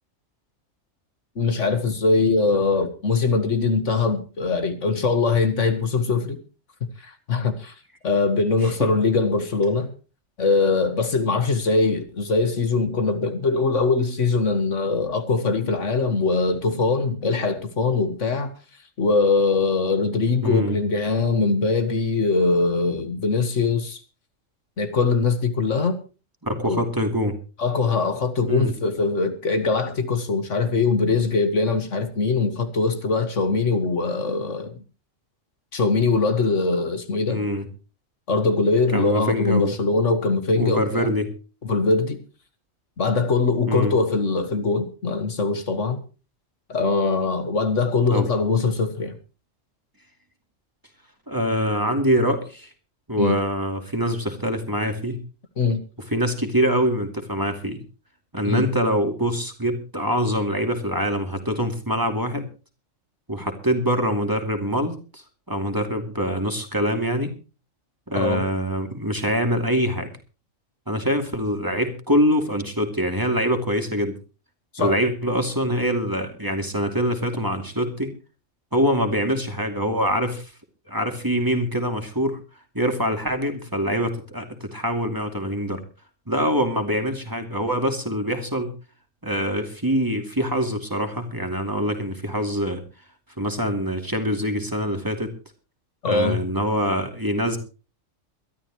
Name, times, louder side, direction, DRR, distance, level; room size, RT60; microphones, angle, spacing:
voice 1, 1.4-6.4 7.0-7.7 8.0-9.9 10.4-18.5 19.0-24.0 24.8-26.0 26.6-26.8 27.6-34.7 35.7-37.4 38.3-41.1 41.6-42.2 43.0-46.0 46.7-49.1 53.2-53.4 55.6-55.8 58.4-58.7 68.1-68.5 74.7-75.0 96.0-96.4, left 4 dB, 65° left, 1.9 m, -22 dB
voice 2, 20.4-20.8 26.4-27.3 28.5-28.7 37.3-37.7 38.9-39.8 40.5-41.3 43.7-43.9 48.1-48.3 51.3-52.7 53.1-55.2 56.1-57.8 58.3-62.5 63.3-67.3 68.1-70.1 70.9-74.2 74.8-78.1 78.7-80.5 80.9-82.4 82.7-85.8 86.3-88.7 89.2-92.8 93.4-95.3 96.0-97.6, equal, 15° right, 2.7 m, -24 dB
23.0 x 13.0 x 3.1 m
omnidirectional pair, 1.3 m